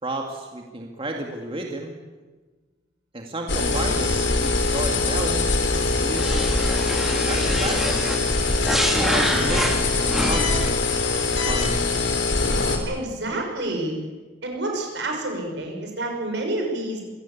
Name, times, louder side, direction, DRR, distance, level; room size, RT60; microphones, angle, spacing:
voice 1, 0.0-1.9 3.1-4.1 4.4-5.7 6.0-6.5 7.1-8.2 8.8-11.9, right 2 dB, 30° right, 2 dB, 2.1 m, -32 dB
sound 1, 3.5-12.8, left 3 dB, 85° left, 3.9 m, -23 dB
sound 2, 6.1-10.7, equal, ahead, 2.6 m, -27 dB
voice 2, 12.9-14.0 14.4-17.0, right 2 dB, 70° right, 2 dB, 6.4 m, -28 dB
26.0 x 17.5 x 8.4 m, 1.3 s
head